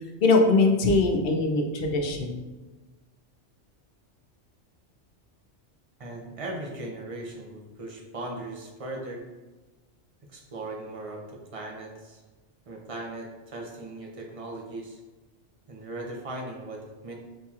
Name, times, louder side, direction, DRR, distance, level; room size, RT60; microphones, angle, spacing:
voice 1, 0.2-2.4, left 3 dB, 60° left, 2 dB, 0.7 m, -22 dB
voice 2, 6.0-9.2 10.3-12.2 12.7-15.0 15.7-17.1, right 2 dB, 35° right, 0 dB, 0.6 m, -38 dB
6.3 x 2.8 x 2.4 m, 1.2 s
omnidirectional pair, 1.2 m